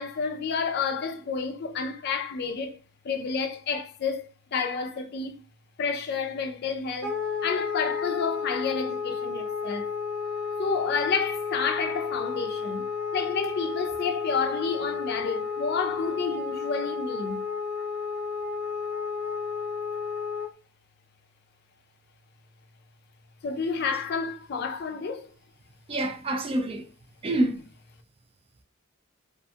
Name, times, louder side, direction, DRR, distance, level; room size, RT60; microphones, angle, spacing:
voice 1, 0.0-2.8 3.0-5.4 5.8-7.1 7.4-9.9 10.6-17.4 23.4-25.3, left 5 dB, 50° left, 0.4 m, -30 dB
Wind instrument woodwind instrument, 7.0-20.5, left 5 dB, 75° right, 0.6 m, -32 dB
voice 2, 25.9-26.9 27.2-27.6, right 1 dB, 25° right, 0.3 m, -27 dB
2.4 x 2.2 x 2.7 m
head